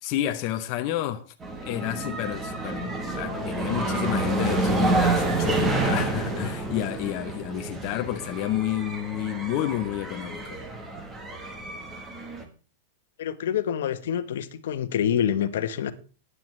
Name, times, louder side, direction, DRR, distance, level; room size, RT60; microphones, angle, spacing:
voice 1, 0.0-1.2 1.6-10.6, left 13 dB, 30° left, 0.7 m, -30 dB
sound 1, 1.4-12.4, right 2 dB, 15° right, 1.1 m, -28 dB
voice 2, 13.2-15.9, left 9 dB, 65° left, 1.0 m, -26 dB
14.5 x 9.5 x 3.2 m
supercardioid pair, 180°, 0 cm